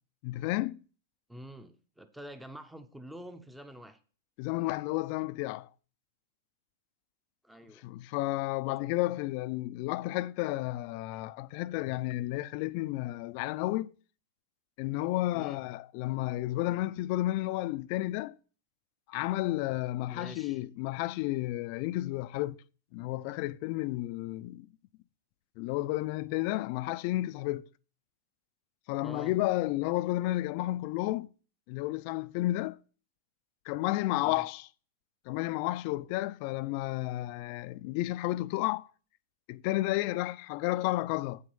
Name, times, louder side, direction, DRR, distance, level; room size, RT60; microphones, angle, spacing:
voice 1, 0.2-0.8 4.4-5.7 7.8-13.9 14.8-18.4 19.1-22.6 22.9-24.7 25.6-27.7 28.9-31.3 31.7-32.8 33.7-34.7 35.3-38.9 39.5-41.4, left 17 dB, 45° left, 0.4 m, -32 dB
voice 2, 1.3-4.0 7.4-7.8 15.3-15.6 20.1-20.6 29.0-29.3 34.2-34.4, equal, 5° right, 0.7 m, -47 dB
7.8 x 6.2 x 5.5 m
supercardioid pair, 145°, 0 cm